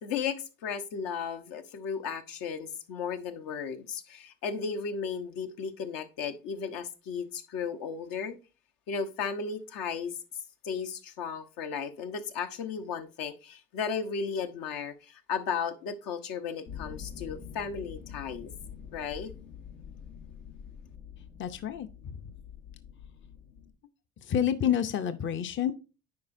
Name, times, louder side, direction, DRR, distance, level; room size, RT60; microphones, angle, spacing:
voice 1, 0.0-8.4 8.9-10.2 10.6-18.5 18.9-19.3, left 6 dB, 65° left, 1.0 m, -35 dB
sound 1, 16.7-23.7, left 8 dB, 85° left, 1.9 m, -46 dB
voice 2, 21.4-21.9 24.2-25.7, left 9 dB, 35° left, 0.6 m, -28 dB
9.4 x 4.8 x 2.6 m
supercardioid pair, 70°, 36 cm